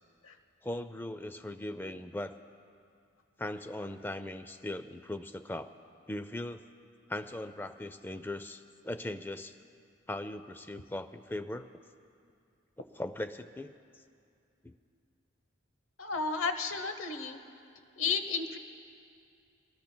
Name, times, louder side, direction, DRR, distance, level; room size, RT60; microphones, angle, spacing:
voice 1, 0.6-2.4 3.4-5.7 6.1-6.6 7.1-9.6 10.1-11.8 12.8-13.7 14.6-14.8, left 1 dB, 10° left, 11 dB, 0.3 m, -39 dB
voice 2, 16.0-17.4 18.0-18.6, left 4 dB, 80° left, 8 dB, 0.9 m, -32 dB
24.0 x 19.0 x 2.2 m, 2.5 s
head